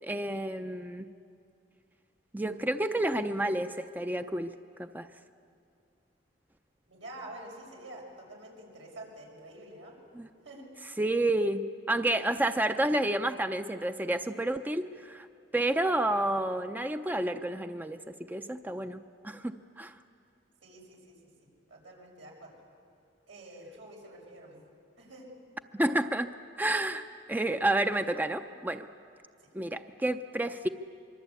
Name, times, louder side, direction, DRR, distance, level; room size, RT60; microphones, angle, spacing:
voice 1, 0.0-1.1 2.3-5.1 10.1-10.3 11.0-15.3 15.5-18.0 18.3-19.9 25.7-28.9 29.5-30.7, right 1 dB, 10° right, 8 dB, 0.6 m, -30 dB
voice 2, 6.9-9.9 10.4-10.7 20.6-21.3 21.7-22.6 23.3-24.7 25.0-25.3 29.4-29.5, right 1 dB, 90° right, -1 dB, 6.4 m, -48 dB
25.0 x 23.5 x 8.4 m, 2.4 s
head